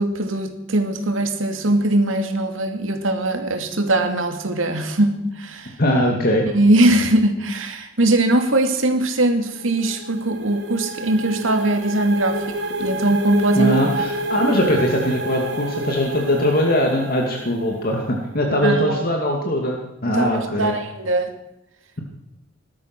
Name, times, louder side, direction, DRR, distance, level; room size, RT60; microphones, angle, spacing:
voice 1, 0.0-5.7 6.5-13.8 18.6-19.0 20.1-21.4, right 1 dB, 90° right, 5 dB, 2.5 m, -20 dB
voice 2, 5.8-6.5 13.6-19.8 20.0-20.8, equal, 50° left, 1 dB, 2.4 m, -21 dB
sound 1, 9.4-18.1, right 1 dB, 60° right, 3.3 m, -29 dB
19.0 x 12.5 x 6.1 m, 0.85 s
head